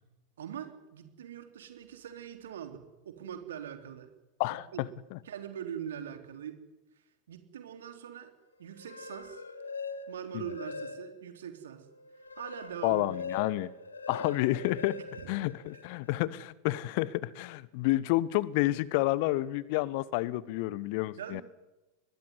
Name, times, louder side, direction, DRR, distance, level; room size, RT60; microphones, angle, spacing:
voice 1, 0.4-4.1 4.5-4.8 5.2-6.6 7.3-8.3 8.6-9.4 10.1-11.9 12.4-13.1 15.2-15.3 21.2-21.4, right 9 dB, 60° right, 6 dB, 3.7 m, -42 dB
voice 2, 4.4-5.2 10.3-10.4 12.8-13.7 14.1-15.0 15.3-21.4, left 17 dB, 45° left, 20 dB, 1.1 m, -30 dB
sound 1, 8.7-11.4 11.8-16.1, left 3 dB, 75° left, 2.0 m, -42 dB
24.5 x 21.0 x 9.7 m, 1.1 s
figure-of-eight pair, 90°, 0 cm